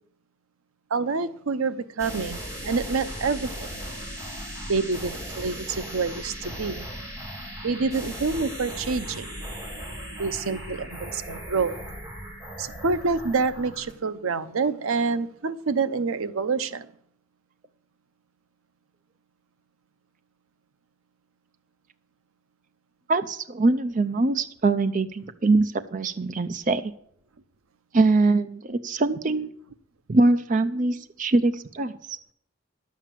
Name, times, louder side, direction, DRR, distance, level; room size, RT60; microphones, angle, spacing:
voice 1, 0.9-3.7 4.7-6.9 7.6-9.3 10.2-11.8 12.6-16.9, right 4 dB, 85° right, 0.7 m, -27 dB
sound 1, 2.0-13.9, equal, 15° right, 3.4 m, -37 dB
voice 2, 23.1-26.9 27.9-29.5 30.1-32.2, right 3 dB, 40° right, 0.5 m, -23 dB
11.0 x 7.4 x 7.4 m
head